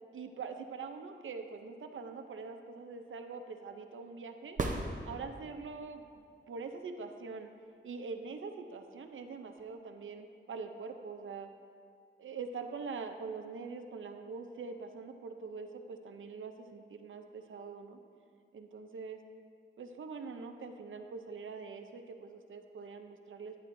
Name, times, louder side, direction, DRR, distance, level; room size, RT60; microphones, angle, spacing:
voice 1, 0.1-4.6 5.0-7.5 7.8-11.5 12.2-18.0 18.5-19.2 19.8-23.6, right 4 dB, 80° right, 6 dB, 0.6 m, -44 dB
sound 1, 4.5-5.7 9.6-9.7, right 2 dB, 40° right, 0.7 m, -36 dB
11.5 x 9.1 x 2.6 m, 2.2 s
wide cardioid pair, 120°, 20 cm